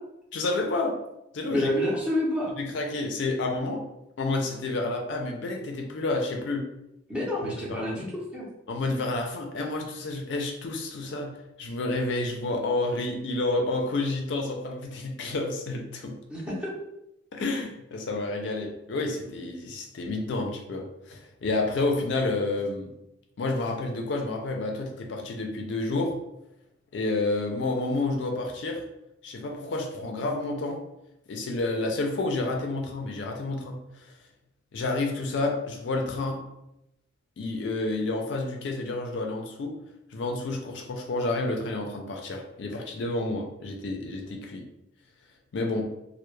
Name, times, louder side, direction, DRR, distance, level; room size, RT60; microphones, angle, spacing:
voice 1, 0.3-1.0 1.3-1.7 2.6-3.9 4.2-6.7 7.4-7.9 8.7-11.3 11.6-16.2 17.3-22.9 23.4-26.1 26.9-28.8 29.2-30.8 31.3-34.1 34.7-36.4 37.4-39.8 40.1-44.7 45.5-45.9, left 2 dB, 60° left, 2 dB, 0.4 m, -30 dB
voice 2, 1.5-2.5 7.1-8.1 8.3-8.5 16.3-16.7, left 1 dB, 5° right, -5 dB, 0.5 m, -28 dB
2.2 x 2.0 x 3.0 m, 0.86 s
head